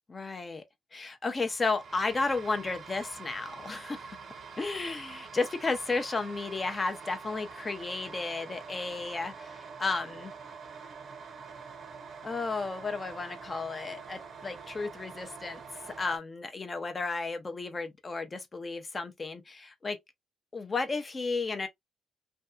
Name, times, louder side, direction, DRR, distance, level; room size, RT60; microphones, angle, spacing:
voice 1, 0.1-0.6 0.9-4.1 4.6-10.3 12.2-15.6 16.0-20.0 20.5-21.7, left 3 dB, 30° left, 0.6 m, -33 dB
sound 1, 1.4-16.2, right 5 dB, 55° right, 0.7 m, -46 dB
2.6 x 2.2 x 2.3 m
cardioid pair, 90°, 0 cm